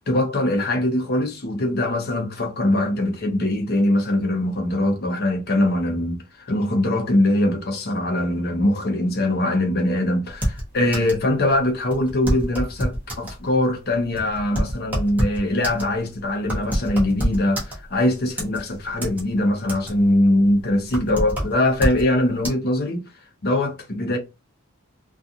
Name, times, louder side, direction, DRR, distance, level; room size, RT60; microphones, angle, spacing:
voice 1, 0.1-23.0 23.4-24.2, left 1 dB, 45° left, 0.6 m, -22 dB
sound 1, 10.3-11.3 11.5-11.6 11.9-13.4 13.9-18.0 18.4-19.2 19.5-20.1 20.5-22.1 22.4-22.5, equal, 5° right, 0.7 m, -26 dB
2.4 x 2.4 x 2.7 m
head